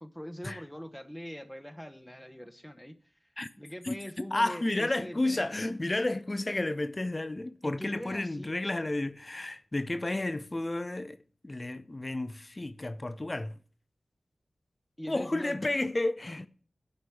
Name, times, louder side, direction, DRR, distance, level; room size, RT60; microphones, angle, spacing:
voice 1, 0.0-3.3 3.6-5.4 7.6-8.5 15.0-15.9, equal, 10° left, 1.0 m, -43 dB
voice 2, 4.3-11.2 11.4-13.6 15.1-16.5, left 2 dB, 35° left, 0.6 m, -31 dB
8.0 x 5.3 x 7.4 m
cardioid pair, 50°, 0 cm